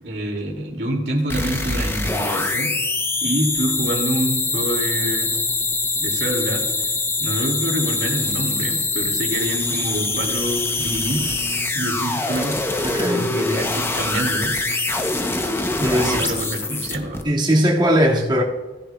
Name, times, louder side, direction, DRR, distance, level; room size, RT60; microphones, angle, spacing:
voice 1, 0.0-2.7 3.2-5.3 6.0-6.6 7.2-12.6 13.2-14.5 15.9-17.2, right 1 dB, 70° right, 2.2 m, -26 dB
sound 1, 1.3-17.2, left 3 dB, 15° left, 0.6 m, -24 dB
voice 2, 12.8-13.3 15.8-16.2 17.2-18.4, equal, 25° right, 1.8 m, -19 dB
17.0 x 10.0 x 2.2 m
head